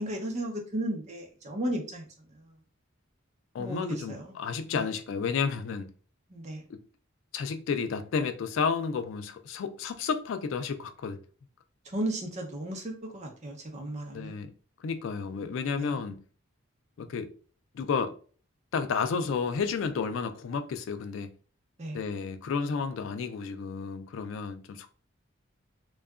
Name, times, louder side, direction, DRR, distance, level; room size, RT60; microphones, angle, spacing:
voice 1, 0.0-2.0 2.3-2.5 3.6-4.3 4.7-5.0 6.3-6.6 11.8-14.3 15.8-16.0 21.8-22.0, right 1 dB, 35° right, 0.6 m, -35 dB
voice 2, 3.5-5.9 6.7-6.8 7.3-11.2 14.1-14.5 14.8-16.2 17.0-17.3 17.7-18.1 18.7-21.3 21.9-24.9, left 5 dB, 65° left, 0.3 m, -31 dB
2.7 x 2.3 x 2.3 m
head